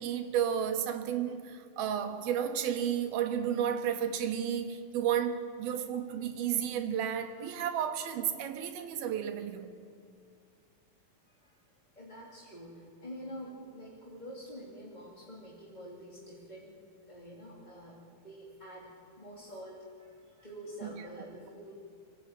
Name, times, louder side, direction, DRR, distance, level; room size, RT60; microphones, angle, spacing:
voice 1, 0.0-9.7 20.8-20.9, right 9 dB, 85° right, 6 dB, 3.2 m, -32 dB
voice 2, 11.3-11.6 12.0-16.8 17.1-21.7, equal, 15° left, -5 dB, 2.5 m, -47 dB
25.5 x 16.5 x 9.1 m, 2.2 s
omnidirectional pair, 4.2 m